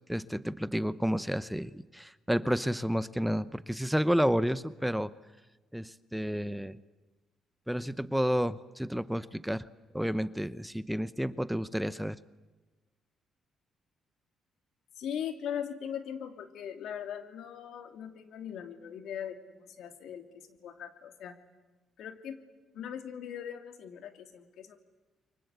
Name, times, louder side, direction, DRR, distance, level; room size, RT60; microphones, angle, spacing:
voice 1, 0.1-5.1 5.7-6.8 7.7-9.7 9.9-12.2, equal, 5° right, 15 dB, 0.8 m, -30 dB
voice 2, 15.0-21.3 22.0-22.4 22.7-24.8, left 9 dB, 75° left, 7 dB, 2.6 m, -40 dB
29.5 x 24.0 x 8.2 m, 1.2 s
cardioid pair, 90°, 0 cm